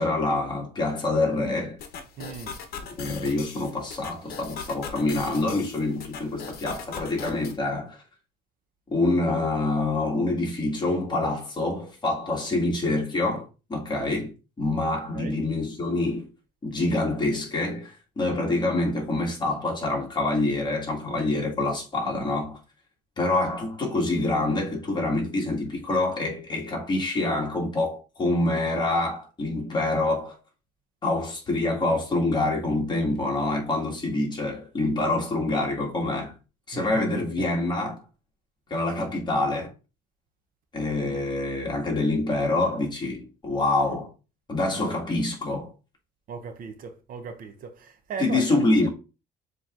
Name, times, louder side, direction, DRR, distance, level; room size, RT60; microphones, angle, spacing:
voice 1, 0.0-1.8 3.0-8.0 8.9-14.3 14.6-16.3 16.6-22.6 23.2-30.4 31.0-36.3 36.7-38.0 38.7-39.7 40.7-44.1 44.5-45.7 48.2-48.9, left 2 dB, 25° left, 1.8 m, -26 dB
sound 1, 1.8-7.6, left 6 dB, 65° left, 0.9 m, -39 dB
voice 2, 2.2-2.6 15.1-15.4 36.7-37.0 37.4-37.5 46.3-48.6, right 6 dB, 55° right, 0.7 m, -37 dB
7.0 x 3.0 x 2.4 m
cardioid pair, 110°, 17 cm